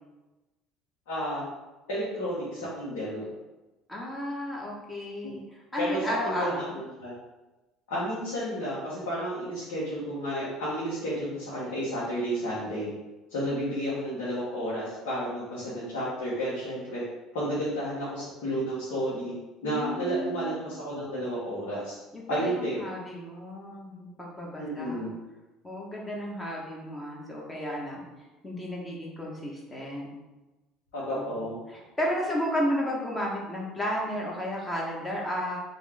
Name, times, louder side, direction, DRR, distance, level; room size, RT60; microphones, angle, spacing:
voice 1, 1.1-1.5 1.9-3.3 5.2-5.3 5.8-7.1 7.9-12.9 13.3-17.0 17.3-19.3 19.6-21.9 22.3-22.8 24.6-25.1 30.9-31.5, equal, 85° left, -9 dB, 1.1 m, -31 dB
voice 2, 3.9-5.4 5.7-6.7 19.6-20.5 22.1-25.1 25.6-28.0 28.4-30.1 31.1-31.3 31.7-35.6, equal, 15° left, -3 dB, 1.1 m, -33 dB
3.3 x 2.6 x 3.4 m, 1.1 s
supercardioid pair, 85°, 0 cm